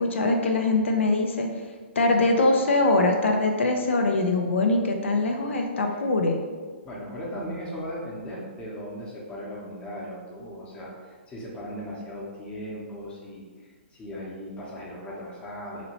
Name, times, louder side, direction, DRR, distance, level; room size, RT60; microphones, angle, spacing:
voice 1, 0.0-1.5 2.0-6.4, left 2 dB, 80° left, 3 dB, 0.4 m, -22 dB
voice 2, 6.8-13.5 13.9-15.8, equal, 15° left, -4 dB, 0.7 m, -37 dB
2.9 x 2.8 x 2.9 m, 1.5 s
hypercardioid pair, 135°, 6 cm